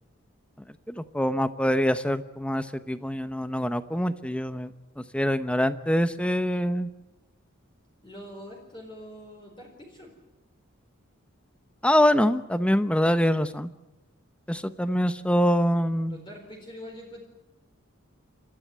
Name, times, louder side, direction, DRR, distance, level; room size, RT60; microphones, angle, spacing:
voice 1, 0.9-4.7 5.0-6.9 11.8-13.7 14.5-16.2, equal, 5° left, 11 dB, 0.9 m, -24 dB
voice 2, 8.0-10.1 16.1-17.2, equal, 25° left, 0 dB, 4.3 m, -44 dB
29.0 x 13.5 x 9.4 m, 0.97 s
head